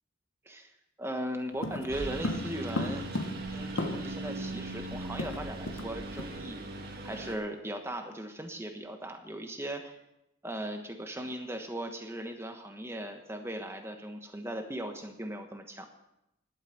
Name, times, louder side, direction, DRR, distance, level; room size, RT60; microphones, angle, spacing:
voice 1, 1.0-3.0 3.5-6.7 7.0-10.0 10.4-15.9, right 1 dB, 15° right, 5 dB, 1.2 m, -38 dB
sound 1, 1.6-4.3 4.6-4.7 4.9-5.9 6.2-6.4 6.8-7.0, left 1 dB, 75° left, 1.3 m, -35 dB
Engine, 1.9-7.4, right 2 dB, 50° right, 1.7 m, -39 dB
11.5 x 8.7 x 7.8 m, 0.86 s
head